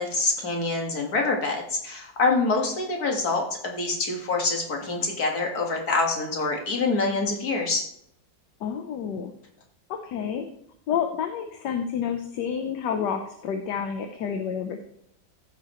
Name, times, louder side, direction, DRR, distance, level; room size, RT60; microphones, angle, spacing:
voice 1, 0.0-7.8, left 3 dB, 55° left, 1 dB, 2.2 m, -26 dB
voice 2, 8.6-9.3 9.9-10.5 10.9-14.8, left 7 dB, 70° left, 6 dB, 1.4 m, -29 dB
14.5 x 6.7 x 3.1 m, 0.74 s
omnidirectional pair, 2.0 m